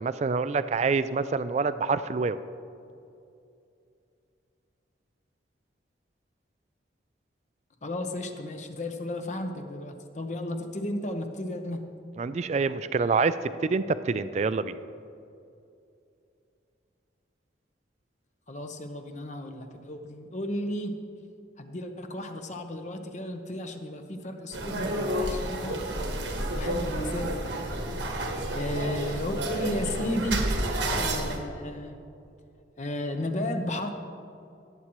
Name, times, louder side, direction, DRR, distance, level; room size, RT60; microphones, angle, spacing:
voice 1, 0.0-2.4 12.2-13.3 13.6-14.8, right 4 dB, 35° right, 13 dB, 0.3 m, -26 dB
voice 2, 7.8-11.8 18.5-21.0 21.6-26.1 26.5-27.7 28.5-30.4 31.0-32.0 32.8-33.9, left 1 dB, 40° left, 6 dB, 0.8 m, -34 dB
sound 1, 24.5-31.4, right 1 dB, 75° right, 1.3 m, -30 dB
17.5 x 8.5 x 3.1 m, 2.6 s
head